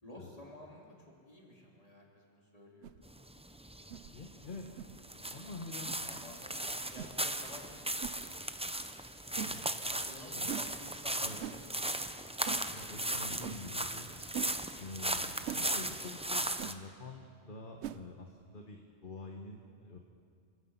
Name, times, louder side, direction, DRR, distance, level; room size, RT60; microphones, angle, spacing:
voice 1, 0.0-3.0 4.6-4.7 6.0-8.6 9.9-12.5, left 1 dB, 35° left, -2 dB, 3.4 m, -53 dB
sound 1, 2.8-3.0 3.9-4.1 4.8-4.9 5.9-6.0 7.0-7.1 8.0-8.2 9.4-9.6 10.5-10.7 11.4-11.6 12.5-12.6 13.4-13.6 14.3-14.5 15.5-15.7 16.6-16.8 17.8-18.0, right 10 dB, 80° right, 1.0 m, -41 dB
sound 2, 3.0-16.7, right 1 dB, 10° right, 0.5 m, -37 dB
voice 2, 4.1-4.6 5.3-6.0 9.4-9.6 10.3-10.5 11.2-11.4 12.7-14.1 14.8-20.0, left 3 dB, 50° left, 2 dB, 1.5 m, -47 dB
28.0 x 16.0 x 5.7 m, 2.2 s
omnidirectional pair, 1.1 m